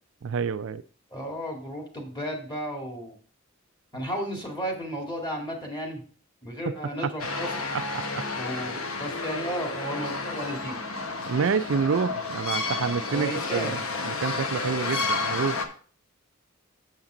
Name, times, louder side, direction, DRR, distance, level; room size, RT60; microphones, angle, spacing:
voice 1, 0.2-0.8 6.7-7.1 7.7-7.8 8.1-8.2 11.3-15.6, right 6 dB, 65° right, 0.4 m, -28 dB
voice 2, 1.1-3.1 3.9-6.0 6.4-7.6 8.3-10.8 13.1-14.1, equal, 20° left, 2.1 m, -34 dB
sound 1, 7.2-15.7, left 3 dB, 85° left, 1.1 m, -31 dB
7.3 x 7.3 x 3.8 m
head